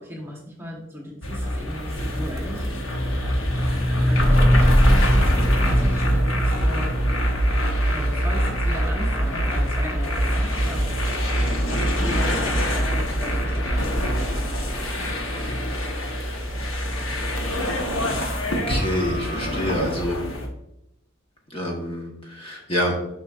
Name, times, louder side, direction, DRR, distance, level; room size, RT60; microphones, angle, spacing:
voice 1, 0.0-2.7 3.0-3.2 4.1-6.9 7.8-10.8 11.6-15.6, equal, 10° right, -1 dB, 1.1 m, -36 dB
sound 1, 1.2-20.5, equal, 85° left, 1.1 m, -22 dB
voice 2, 18.5-20.2 21.5-23.0, equal, 30° left, 0 dB, 1.2 m, -27 dB
7.1 x 5.8 x 2.5 m, 0.84 s
head